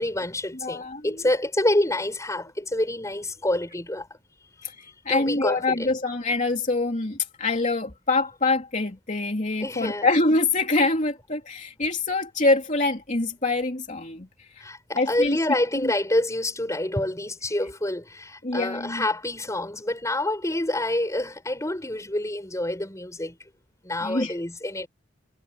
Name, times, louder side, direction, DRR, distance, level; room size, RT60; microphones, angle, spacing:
voice 1, 0.0-4.1 5.1-6.0 9.6-10.1 14.6-23.4 23.8-24.9, left 1 dB, 15° left, 5.8 m, -27 dB
voice 2, 0.6-1.1 4.6-4.7 5.0-14.6 14.9-15.4 15.8-15.9 18.4-19.0 24.0-24.3, left 2 dB, 40° left, 3.1 m, -25 dB
head